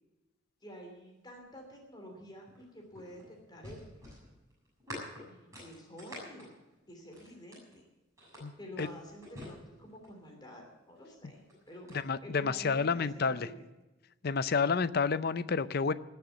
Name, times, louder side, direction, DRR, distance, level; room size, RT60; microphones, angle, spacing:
voice 1, 0.6-3.9 5.2-6.5 6.9-7.8 8.6-11.9 12.2-13.6, equal, 20° left, 1 dB, 2.9 m, -49 dB
sound 1, 2.5-7.8 8.2-10.3 11.2-12.0, equal, 15° right, 6.9 m, -48 dB
voice 2, 12.0-13.5 14.2-15.9, left 5 dB, 50° left, 15 dB, 0.5 m, -29 dB
19.0 x 6.8 x 8.2 m, 1.0 s
head